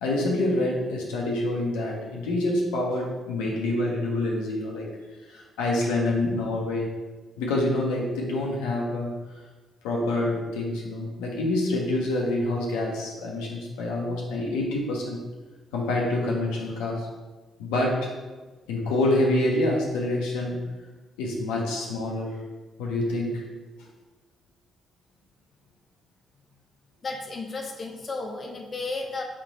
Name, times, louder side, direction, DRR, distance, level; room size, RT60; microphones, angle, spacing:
voice 1, 0.0-4.9 5.3-6.9 7.4-9.1 9.8-15.2 15.7-17.1 17.6-18.1 18.7-20.6 21.2-22.4 22.8-23.4, left 1 dB, 80° left, -2 dB, 0.7 m, -26 dB
voice 2, 27.0-29.2, left 3 dB, 45° left, 2 dB, 0.6 m, -33 dB
3.3 x 3.2 x 4.0 m, 1.2 s
hypercardioid pair, 45°, 0 cm